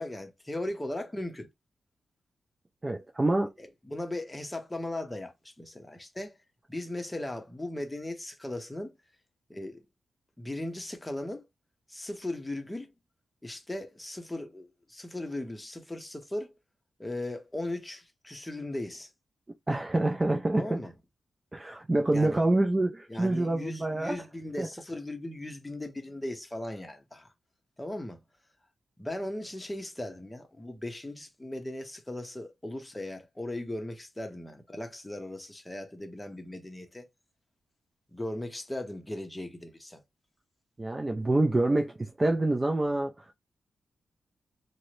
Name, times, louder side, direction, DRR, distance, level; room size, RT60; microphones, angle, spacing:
voice 1, 0.0-1.5 3.6-6.4 6.7-8.9 9.5-9.9 10.4-11.5 11.9-12.9 13.4-16.5 17.0-19.1 20.6-20.9 22.1-22.4 23.1-27.3 27.8-28.2 29.0-37.1 38.1-40.0, left 1 dB, 10° left, 0.7 m, -38 dB
voice 2, 2.8-3.5 19.7-20.8 21.5-24.2 24.6-24.7 40.8-43.3, right 2 dB, 20° right, 0.3 m, -26 dB
2.6 x 2.0 x 3.1 m
wide cardioid pair, 140°, 0 cm